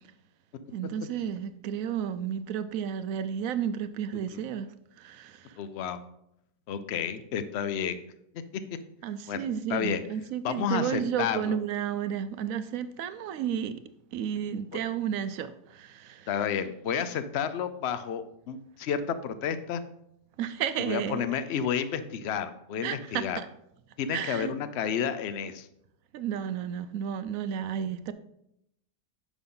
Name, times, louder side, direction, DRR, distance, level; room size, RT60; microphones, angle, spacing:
voice 1, 0.7-5.6 9.0-13.8 14.1-16.3 20.4-21.2 22.8-23.5 24.1-24.5 26.1-28.1, right 9 dB, 70° right, 0.8 m, -32 dB
voice 2, 5.6-6.0 6.7-8.0 9.3-10.0 10.4-11.6 14.7-14.8 16.3-19.8 20.8-23.4 24.0-25.7, left 7 dB, 70° left, 0.6 m, -31 dB
9.7 x 6.0 x 3.8 m
omnidirectional pair, 1.8 m